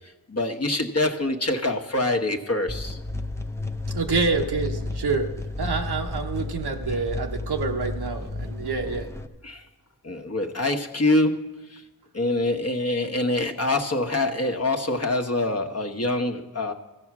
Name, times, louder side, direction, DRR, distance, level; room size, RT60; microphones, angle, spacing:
voice 1, 0.3-3.0 9.4-9.6 10.0-11.8 12.1-16.7, left 2 dB, 40° left, 5 dB, 1.2 m, -25 dB
sound 1, 2.7-9.3, left 2 dB, 5° left, 0.7 m, -32 dB
voice 2, 3.9-5.3 5.6-9.1, right 4 dB, 80° right, 3 dB, 1.2 m, -27 dB
14.5 x 7.1 x 6.1 m, 1.1 s
cardioid pair, 45°, 39 cm